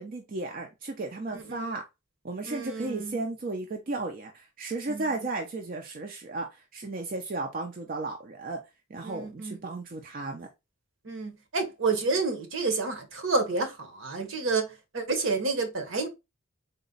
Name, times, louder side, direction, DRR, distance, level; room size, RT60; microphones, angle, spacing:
voice 1, 0.0-1.8 2.2-8.6 8.9-10.5, right 3 dB, 40° right, 0.4 m, -34 dB
voice 2, 1.3-1.6 2.5-3.2 4.9-5.0 9.0-9.6 11.0-16.1, right 3 dB, 70° right, 1.0 m, -30 dB
4.0 x 2.2 x 3.8 m
head